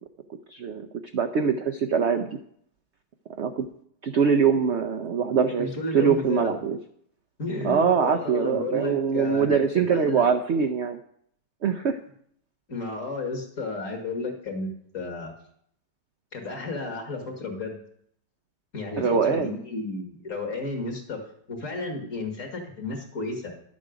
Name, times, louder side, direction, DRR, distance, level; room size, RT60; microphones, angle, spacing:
voice 1, 0.5-0.9 1.1-2.3 3.4-3.7 4.0-5.7 5.9-6.8 7.6-11.0 11.6-12.0 19.0-19.5, right 6 dB, 65° right, 7 dB, 0.7 m, -23 dB
voice 2, 5.6-6.5 7.4-9.6 9.9-10.3 12.7-14.7 14.9-15.3 16.3-17.8 18.7-21.2 21.5-23.5, left 2 dB, 45° left, 3 dB, 2.1 m, -32 dB
11.0 x 7.4 x 5.1 m, 0.67 s
omnidirectional pair, 1.9 m